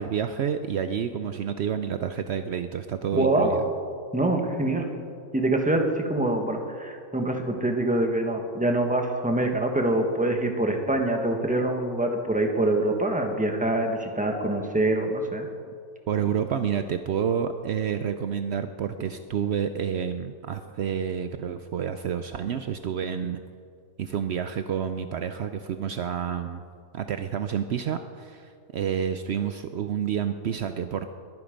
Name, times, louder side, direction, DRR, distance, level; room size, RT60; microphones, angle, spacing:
voice 1, 0.0-3.7 16.1-23.4 24.0-26.6 26.9-31.1, right 8 dB, 80° right, 9 dB, 0.6 m, -29 dB
voice 2, 3.1-3.6 4.1-4.9 5.3-15.5, right 1 dB, 5° right, 3 dB, 1.2 m, -25 dB
21.0 x 9.5 x 5.2 m, 2.2 s
omnidirectional pair, 1.7 m